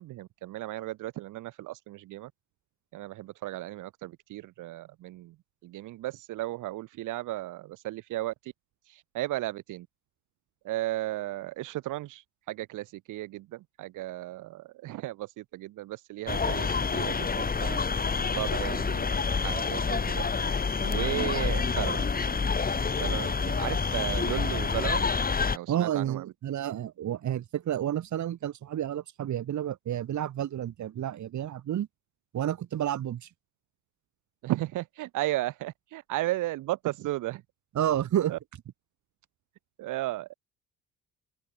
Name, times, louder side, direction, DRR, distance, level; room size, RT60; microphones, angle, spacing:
voice 1, 0.0-2.3 2.9-5.4 5.6-8.5 8.8-9.9 10.6-17.8 18.3-20.2 20.8-22.3 23.0-25.2 25.5-26.2 34.4-37.4 38.3-38.4 39.8-40.3, right 16 dB, 90° right, 1.8 m, -35 dB
sound 1, 16.3-25.6, left 5 dB, 30° left, 2.4 m, -28 dB
voice 2, 25.7-31.9 32.3-33.3 37.7-38.3, right 11 dB, 70° right, 6.4 m, -30 dB
open air
cardioid pair, 90°, 30 cm